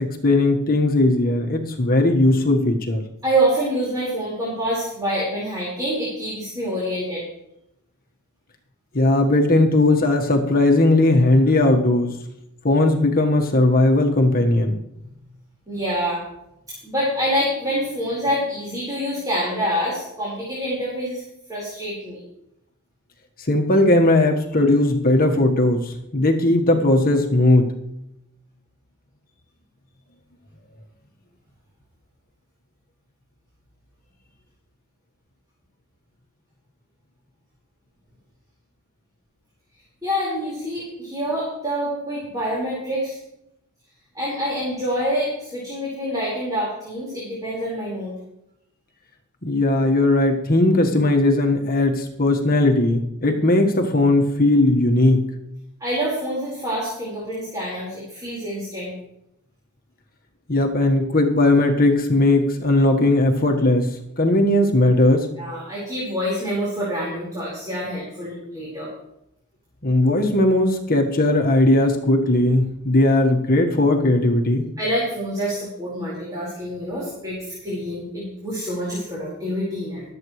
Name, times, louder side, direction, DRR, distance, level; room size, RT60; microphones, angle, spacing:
voice 1, 0.0-3.0 8.9-12.2 12.6-14.8 23.5-27.7 49.4-55.2 60.5-65.3 69.8-74.7, left 2 dB, 45° left, 3 dB, 1.5 m, -18 dB
voice 2, 3.2-7.2 15.7-16.2 16.8-21.2 21.5-22.2 40.0-43.2 44.1-48.1 55.8-58.9 64.4-64.5 65.3-68.9 74.8-80.0, equal, 15° right, -7 dB, 4.7 m, -26 dB
23.5 x 8.2 x 3.3 m, 0.83 s
head